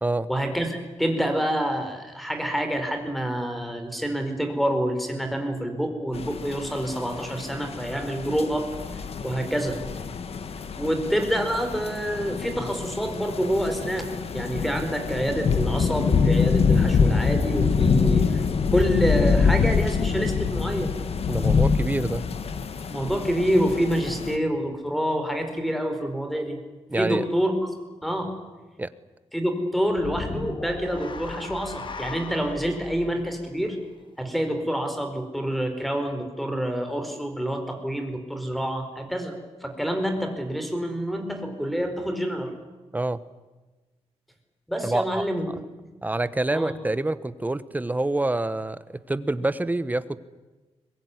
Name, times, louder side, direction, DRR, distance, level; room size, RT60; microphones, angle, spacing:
voice 1, 0.3-8.7 9.2-9.8 10.8-18.5 18.7-20.9 22.9-26.6 26.9-27.5 28.0-28.3 29.3-33.8 34.2-39.4 39.6-42.5 44.7-45.6 46.5-46.7, equal, ahead, 6 dB, 4.6 m, -27 dB
sound 1, 6.1-24.4, left 5 dB, 65° left, 1.7 m, -25 dB
voice 2, 21.3-22.3 26.9-27.2 28.8-28.9 42.9-43.2 44.8-45.2 46.0-48.8 49.1-50.2, right 2 dB, 15° right, 14 dB, 1.0 m, -26 dB
sound 2, 29.9-34.3, left 4 dB, 50° left, 1.9 m, -37 dB
23.0 x 21.0 x 9.7 m, 1.2 s
wide cardioid pair, 140°, 11 cm